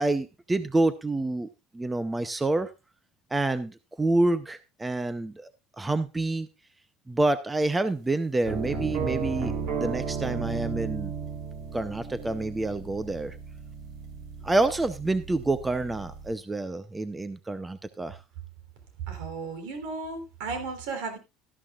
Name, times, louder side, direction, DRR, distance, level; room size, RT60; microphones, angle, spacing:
voice 1, 0.0-1.5 1.7-2.7 3.3-5.5 5.8-6.5 7.1-11.1 11.7-13.3 14.4-18.2, right 2 dB, 10° right, 11 dB, 0.7 m, -27 dB
sound 1, 8.4-16.3, right 6 dB, 60° right, 3.2 m, -34 dB
voice 2, 19.1-21.2, right 4 dB, 80° right, 7 dB, 3.4 m, -34 dB
13.0 x 12.0 x 2.4 m, 0.27 s
cardioid pair, 155°, 0 cm